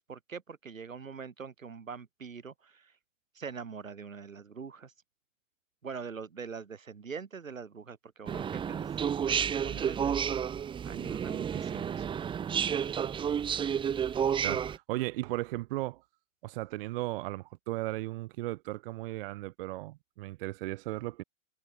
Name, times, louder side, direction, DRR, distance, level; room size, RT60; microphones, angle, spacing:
voice 1, 0.0-2.9 3.3-4.9 5.8-8.9 9.3-10.4 10.8-12.1 12.3-12.4, right 5 dB, 85° right, 2.9 m, -43 dB
sound 1, 8.3-14.8, right 8 dB, 15° right, 0.7 m, -31 dB
voice 2, 14.4-16.0 16.4-21.2, right 18 dB, 50° right, 0.5 m, -36 dB
hypercardioid pair, 110°, 39 cm